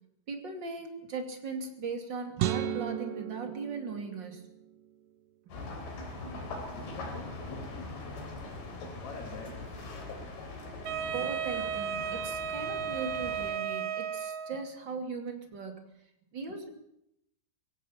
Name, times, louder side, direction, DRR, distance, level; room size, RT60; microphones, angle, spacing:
voice 1, 0.3-4.4 5.5-5.6 11.0-15.8 16.3-16.7, right 4 dB, 30° right, 5 dB, 2.6 m, -39 dB
sound 1, 2.4-4.7, right 12 dB, 85° right, 3.0 m, -34 dB
sound 2, 5.5-13.5, left 2 dB, 85° left, 5.6 m, -42 dB
voice 2, 6.3-8.0 9.0-9.8, left 4 dB, 45° left, 2 dB, 3.9 m, -46 dB
Wind instrument woodwind instrument, 10.8-14.7, right 7 dB, 55° right, 2.5 m, -34 dB
22.5 x 16.5 x 7.3 m, 0.80 s
omnidirectional pair, 4.6 m